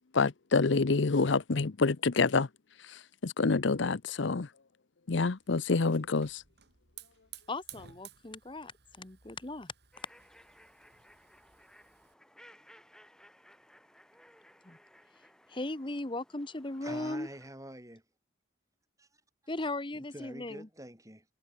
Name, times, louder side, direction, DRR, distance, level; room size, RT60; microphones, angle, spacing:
voice 1, 0.1-2.5 2.9-4.5 5.1-6.4, left 4 dB, 65° left, 0.7 m, -27 dB
Hiss / Fire, 5.3-12.1, right 11 dB, 55° right, 3.8 m, -55 dB
voice 2, 7.5-8.7 9.0-9.7 14.6-14.8 15.5-17.3 19.5-20.7, left 2 dB, 25° left, 1.1 m, -37 dB
sound 1, 9.9-17.5, equal, 5° left, 7.1 m, -59 dB
voice 3, 16.8-18.0 19.0-19.1 19.9-21.3, right 1 dB, 15° right, 7.5 m, -47 dB
head